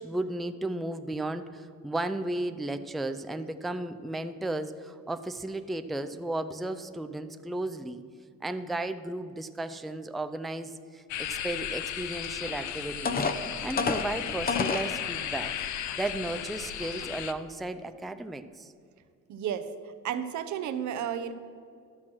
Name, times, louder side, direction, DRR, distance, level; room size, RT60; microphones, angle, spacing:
voice 1, 0.0-8.0 8.4-15.5 16.0-18.7, right 2 dB, ahead, 9 dB, 0.4 m, -34 dB
sound 1, 11.1-17.3, left 10 dB, 70° left, 0.6 m, -35 dB
sound 2, 12.5-12.6 13.1-14.9 15.6-15.7 16.2-16.4, left 4 dB, 30° left, 0.7 m, -29 dB
voice 2, 19.3-21.3, right 9 dB, 70° right, 10 dB, 0.8 m, -33 dB
12.0 x 6.0 x 6.0 m, 2.4 s
cardioid pair, 90°, 30 cm